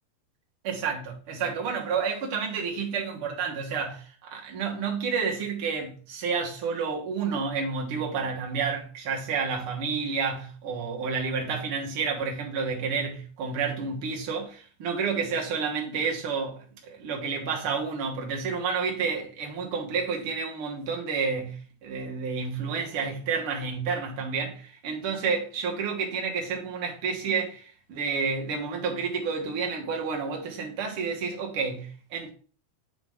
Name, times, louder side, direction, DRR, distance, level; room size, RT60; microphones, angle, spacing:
voice 1, 0.6-32.3, right 5 dB, 50° right, 2.1 m, -30 dB
8.1 x 5.0 x 3.5 m
omnidirectional pair, 3.6 m